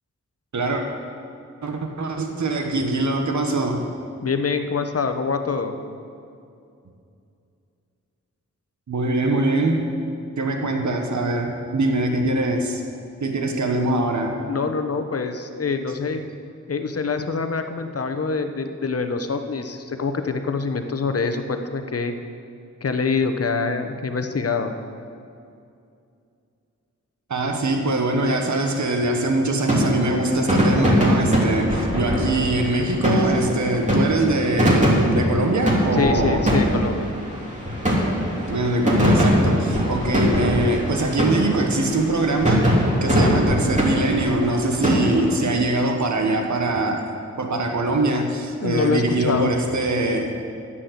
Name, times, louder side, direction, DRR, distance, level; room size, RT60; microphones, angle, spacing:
voice 1, 1.6-3.8 8.9-9.8 10.4-12.8 13.2-14.3 27.3-36.4 38.5-42.7 43.0-47.0 47.4-50.3, right 2 dB, 70° right, 3 dB, 1.3 m, -23 dB
voice 2, 4.2-5.8 14.5-16.2 16.7-22.1 22.8-24.7 35.9-37.1 48.6-49.5, left 4 dB, 50° left, 7 dB, 1.0 m, -25 dB
sound 1, 29.7-45.4, equal, 25° right, 3.1 m, -21 dB
10.0 x 7.6 x 8.1 m, 2.5 s
cardioid pair, 60°, 30 cm